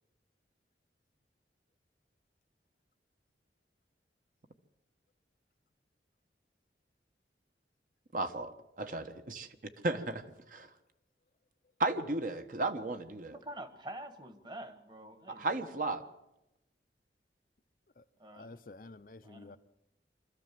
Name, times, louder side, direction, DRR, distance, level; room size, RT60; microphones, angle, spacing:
voice 1, 8.1-9.5 9.8-10.7 11.8-13.3 15.3-16.0, right 2 dB, 50° right, 1.3 m, -34 dB
voice 2, 13.3-15.5 18.2-18.6 19.2-19.6, right 1 dB, 25° right, 1.5 m, -47 dB
voice 3, 18.3-19.6, left 3 dB, 50° left, 0.7 m, -50 dB
25.0 x 14.0 x 7.6 m
head